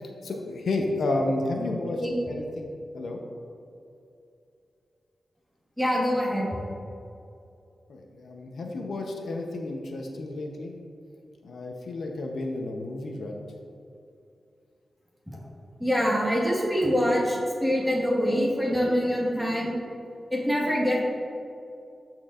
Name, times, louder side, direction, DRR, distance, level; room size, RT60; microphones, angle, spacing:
voice 1, 0.2-2.7 2.9-3.2 7.9-10.7 11.4-13.4, left 2 dB, 80° left, 2 dB, 0.7 m, -31 dB
voice 2, 5.8-6.5 15.3-15.4 15.8-19.8 20.3-21.0, equal, ahead, -4 dB, 1.4 m, -25 dB
13.0 x 4.5 x 2.4 m, 2.6 s
wide cardioid pair, 120°, 0 cm